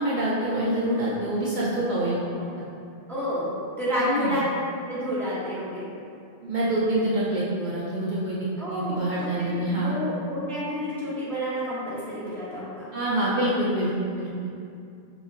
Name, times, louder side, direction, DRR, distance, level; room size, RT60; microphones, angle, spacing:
voice 1, 0.0-2.7 4.0-4.3 6.4-10.0 12.9-14.5, right 1 dB, 55° right, -7 dB, 0.6 m, -26 dB
voice 2, 3.1-4.4 4.9-5.9 8.6-12.9, equal, ahead, -9 dB, 0.6 m, -30 dB
5.9 x 2.0 x 2.5 m, 2.5 s
omnidirectional pair, 1.0 m